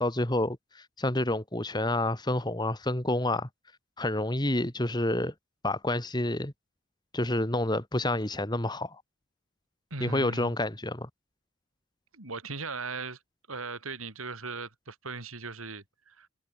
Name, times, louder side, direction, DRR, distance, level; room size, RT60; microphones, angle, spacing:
voice 1, 0.0-3.5 4.0-5.3 5.6-6.5 7.1-9.0 10.0-11.1, left 1 dB, 20° left, 1.9 m, -29 dB
voice 2, 9.9-10.5 12.1-13.2 13.5-16.3, right 4 dB, 85° right, 5.0 m, -38 dB
head